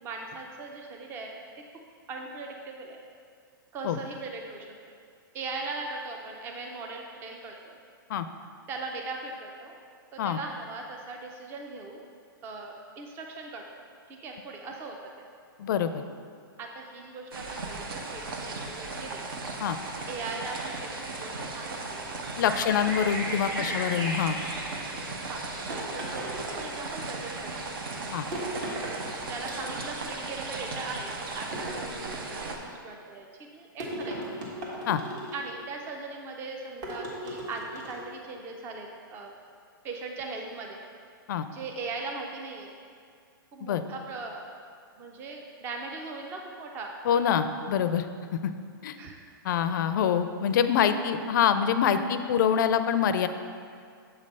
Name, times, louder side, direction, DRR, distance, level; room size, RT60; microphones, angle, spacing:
voice 1, 0.0-1.3 2.1-3.0 3.7-4.7 5.3-7.8 8.7-9.7 10.1-12.0 12.4-13.8 14.2-15.3 16.6-19.3 20.1-22.1 22.5-22.9 23.4-23.8 25.3-25.4 25.7-27.8 28.5-28.9 29.3-33.3 33.5-34.2 35.3-39.4 39.8-40.8 41.5-42.7 43.5-44.4 45.0-46.9 49.0-49.2, right 3 dB, 20° right, 1 dB, 0.4 m, -39 dB
voice 2, 15.6-16.0 19.6-19.8 22.4-24.4 28.1-28.2 34.9-35.0 41.3-41.5 43.6-43.8 47.1-48.1 48.3-48.5 48.8-49.0 49.4-53.3, left 8 dB, 60° left, 10 dB, 0.4 m, -25 dB
sound 1, 17.3-32.6, right 3 dB, 70° right, 0.8 m, -37 dB
sound 2, 20.5-21.7 22.4-25.5, right 1 dB, 90° right, 1.5 m, -37 dB
sound 3, 25.7-27.1 28.3-29.0 29.4-30.1 31.5-32.4 33.8-35.6 36.8-38.1, right 1 dB, 55° right, 1.5 m, -37 dB
7.1 x 3.2 x 5.3 m, 2.2 s
hypercardioid pair, 145°, 12 cm